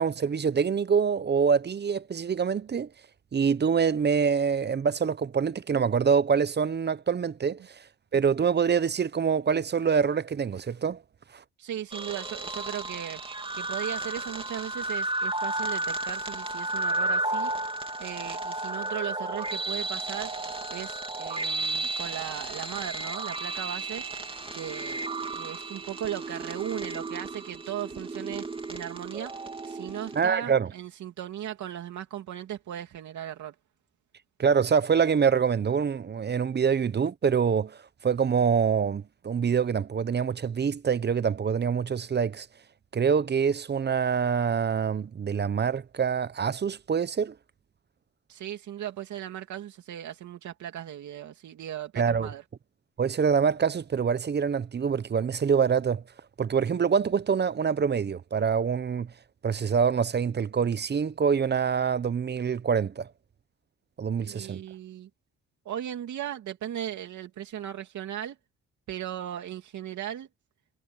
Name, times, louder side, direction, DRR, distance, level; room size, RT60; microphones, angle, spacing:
voice 1, 0.0-2.9 3.3-7.9 8.1-11.0 11.3-11.4 30.2-30.7 34.4-42.5 42.9-47.4 52.0-52.3 53.0-56.0 56.4-59.1 59.4-63.1 64.0-64.6, right 6 dB, 35° right, 0.9 m, -25 dB
voice 2, 11.6-17.5 18.0-20.3 20.7-24.0 24.5-33.5 48.3-52.4 64.2-65.1 65.6-68.4 68.9-70.3, right 11 dB, 70° right, 2.7 m, -37 dB
sound 1, 11.9-30.2, right 2 dB, 20° right, 3.0 m, -33 dB
cardioid pair, 90°, 30 cm